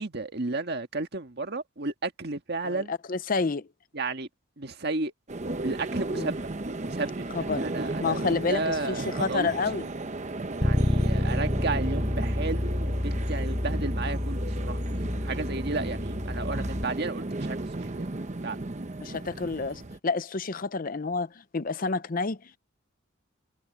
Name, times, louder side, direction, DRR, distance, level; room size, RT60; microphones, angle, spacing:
voice 1, 0.0-2.9 3.9-4.3 4.6-5.1 5.4-6.5 6.8-9.5 10.6-14.8 15.2-18.1 18.4-18.6, right 3 dB, 55° right, 1.7 m, -33 dB
voice 2, 2.6-3.7 6.1-6.3 7.3-7.7 8.0-9.9 19.0-22.6, left 4 dB, 45° left, 0.7 m, -29 dB
sound 1, 5.3-20.0, right 2 dB, 35° right, 0.9 m, -35 dB
Bass guitar, 10.6-16.8, left 1 dB, 10° left, 0.4 m, -28 dB
head